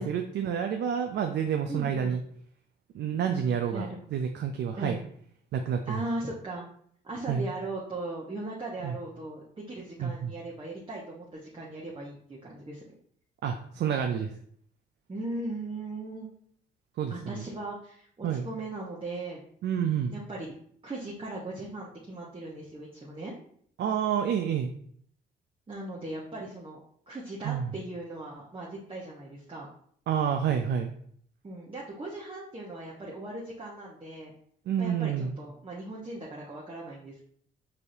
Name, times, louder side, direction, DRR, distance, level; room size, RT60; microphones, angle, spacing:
voice 1, 0.0-2.2 2.9-5.0 5.5-6.0 7.3-7.5 8.8-8.9 10.0-10.3 13.4-14.3 17.0-17.4 18.2-18.5 19.6-20.1 23.8-24.7 27.4-27.7 30.1-30.9 34.7-35.3, right 8 dB, 60° right, 5 dB, 0.4 m, -29 dB
voice 2, 1.7-2.2 3.7-4.0 4.8-5.0 5.9-6.6 7.0-12.8 15.1-16.3 17.1-19.4 20.1-20.5 20.8-23.3 25.7-26.8 27.1-29.7 31.4-34.3 34.8-37.2, right 2 dB, 25° right, -4 dB, 0.9 m, -38 dB
4.9 x 2.7 x 2.6 m, 0.63 s
supercardioid pair, 55°, 21 cm